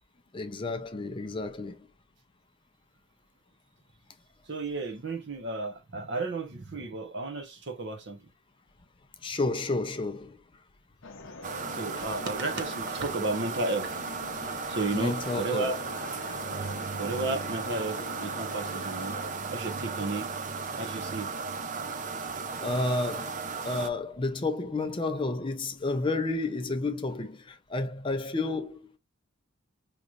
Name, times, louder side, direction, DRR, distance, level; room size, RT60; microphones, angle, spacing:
voice 1, 0.3-1.9 9.2-10.4 14.9-15.7 22.6-29.0, left 2 dB, 25° left, 0.5 m, -31 dB
voice 2, 4.5-8.2 11.7-14.0 14.7-15.8 17.0-19.2 19.5-20.3 20.8-21.3, right 2 dB, 55° right, 1.0 m, -33 dB
sound 1, 11.0-19.3, left 3 dB, 60° left, 0.7 m, -44 dB
sound 2, 11.4-23.9, right 5 dB, 35° right, 0.5 m, -35 dB
5.0 x 3.1 x 2.4 m
head